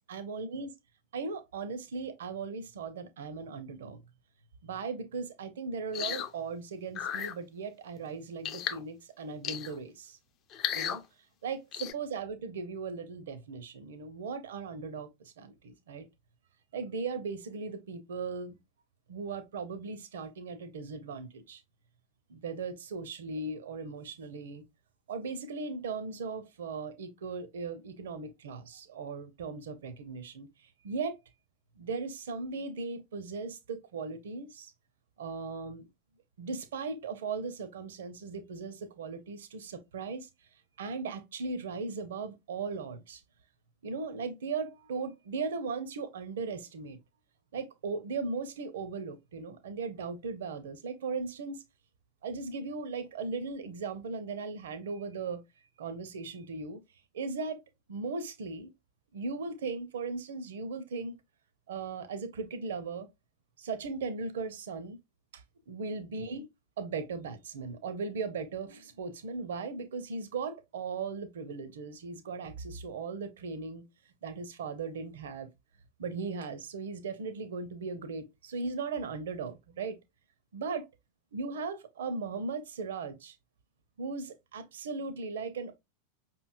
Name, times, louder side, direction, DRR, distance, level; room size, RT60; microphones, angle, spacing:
voice 1, 0.1-0.7 1.1-4.0 4.6-10.2 10.7-11.0 11.4-16.1 16.7-18.6 19.1-21.6 22.3-24.6 25.1-31.2 31.8-34.7 35.2-35.9 36.4-40.3 40.8-43.2 43.8-47.0 47.5-51.6 52.2-55.4 55.8-56.8 57.1-57.6 57.9-58.7 59.1-61.2 61.7-63.1 63.6-65.0 65.3-66.5 66.8-73.8 74.2-75.5 76.0-80.0 80.5-80.9 81.3-83.4 84.0-85.8, right 4 dB, 60° right, 0.5 m, -38 dB
sound 1, 5.9-6.3 6.9-7.3 8.4-8.8 9.4-9.8 10.5-11.0 11.7-11.9, left 9 dB, 35° left, 0.5 m, -34 dB
5.2 x 3.0 x 2.3 m
figure-of-eight pair, 90°, 0 cm